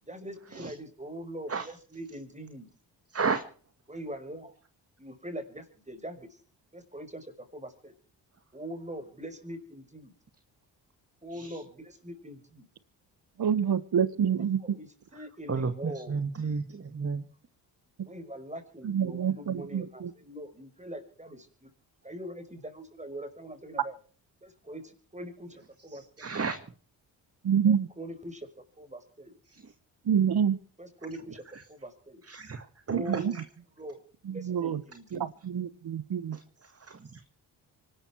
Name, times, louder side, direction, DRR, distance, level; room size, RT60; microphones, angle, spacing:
voice 1, 0.0-2.7 3.9-4.5 5.0-6.4 6.7-7.9 8.5-10.1 11.2-12.7 14.4-16.2 18.0-21.7 22.0-24.0 24.4-24.8 25.1-26.3 27.7-28.5 28.8-29.3 30.8-32.2 32.9-33.4 33.8-34.0 34.3-35.3, equal, 15° right, 7 dB, 5.5 m, -42 dB
voice 2, 3.1-3.4 11.3-11.6 15.5-17.3 26.2-26.6 29.5-29.7 32.2-33.4 36.3-36.4 36.9-37.0, right 5 dB, 30° right, 9 dB, 1.8 m, -32 dB
voice 3, 13.4-14.8 18.8-20.1 27.4-27.9 30.0-30.6 32.9-33.4 34.2-34.8 35.1-36.4, right 8 dB, 55° right, 17 dB, 1.3 m, -27 dB
24.5 x 13.0 x 4.6 m, 0.42 s
supercardioid pair, 55°, 46 cm